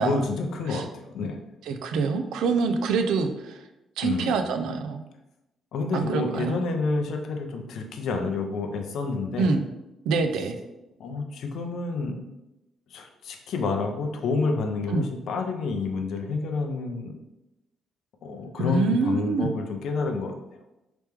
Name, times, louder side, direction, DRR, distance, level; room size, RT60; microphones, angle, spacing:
voice 1, 0.0-1.4 4.0-4.3 5.7-9.5 11.0-12.2 12.9-17.2 18.2-20.3, left 3 dB, 70° left, 4 dB, 0.5 m, -29 dB
voice 2, 1.7-3.6 4.0-5.0 5.9-6.6 9.4-9.6 10.1-10.6 14.9-15.1 18.6-19.5, right 4 dB, 85° right, 6 dB, 0.4 m, -25 dB
3.3 x 3.0 x 3.3 m, 0.94 s
cardioid pair, 90°, 0 cm